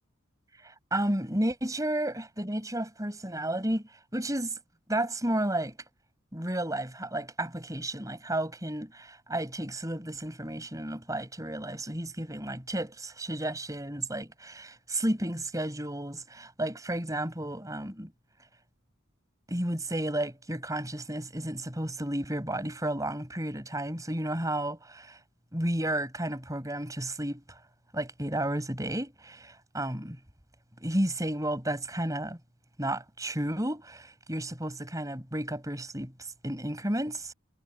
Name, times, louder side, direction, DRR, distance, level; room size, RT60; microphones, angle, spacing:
voice 1, 0.6-3.8 4.1-4.6 4.9-5.8 6.3-18.1 19.5-25.2 25.5-27.6 27.9-30.2 30.8-32.4 32.8-37.3, right 1 dB, 15° right, 7.6 m, -32 dB
head